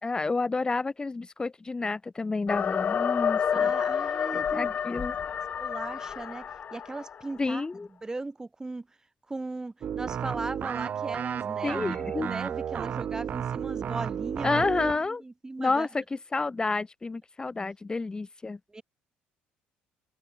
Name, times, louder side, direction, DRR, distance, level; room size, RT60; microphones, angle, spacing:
voice 1, 0.0-3.7 4.5-5.1 7.4-7.9 11.6-12.3 14.4-15.2 15.6-16.0 16.3-18.8, left 3 dB, 20° left, 2.8 m, -29 dB
sound 1, 2.5-7.3, left 7 dB, 45° left, 1.5 m, -29 dB
voice 2, 3.5-4.8 5.6-8.9 9.3-14.7 15.1-15.9 18.7-18.8, right 2 dB, 15° right, 6.3 m, -38 dB
sound 2, 9.8-15.1, right 8 dB, 50° right, 1.1 m, -32 dB
open air
supercardioid pair, 85°, 4 cm